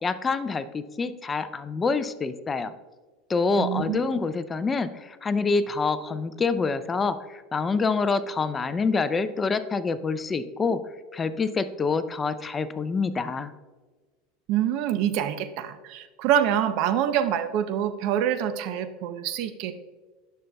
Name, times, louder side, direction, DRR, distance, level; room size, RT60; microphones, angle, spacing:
voice 1, 0.0-2.7 3.3-10.8 11.1-13.5, left 4 dB, 20° left, 13 dB, 0.4 m, -26 dB
voice 2, 3.6-4.0 14.5-19.7, right 10 dB, 60° right, 11 dB, 0.6 m, -26 dB
11.0 x 6.5 x 2.3 m, 1.3 s
supercardioid pair, 120°, 0 cm